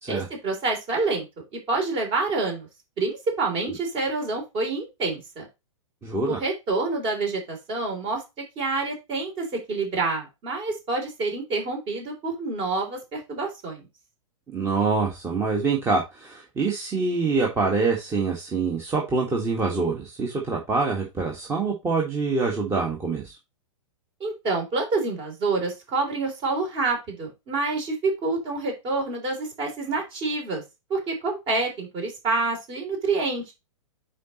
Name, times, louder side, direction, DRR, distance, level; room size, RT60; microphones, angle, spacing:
voice 1, 0.1-1.2 1.5-2.7 3.0-5.5 6.3-13.9 24.2-30.6 30.9-33.4, right 3 dB, 30° right, 3.0 m, -27 dB
voice 2, 6.0-6.4 14.5-23.3, right 4 dB, 15° right, 1.6 m, -25 dB
9.4 x 4.1 x 3.0 m
figure-of-eight pair, 110°, 17 cm